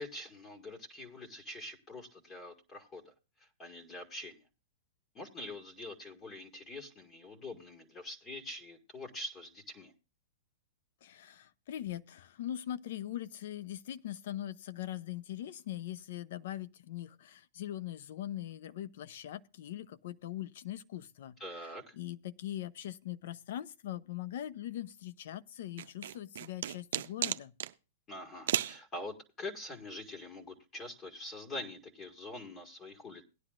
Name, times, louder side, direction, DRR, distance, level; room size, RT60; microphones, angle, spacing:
voice 1, 0.0-3.1 3.4-4.4 5.1-9.9 21.4-21.9 28.1-33.2, left 1 dB, 25° left, 1.9 m, -45 dB
voice 2, 11.0-21.3 22.0-27.5, left 12 dB, 65° left, 0.6 m, -41 dB
sound 1, 25.8-27.7 28.5-28.8, right 10 dB, 70° right, 0.5 m, -34 dB
17.5 x 10.0 x 2.5 m
hypercardioid pair, 125°, 0 cm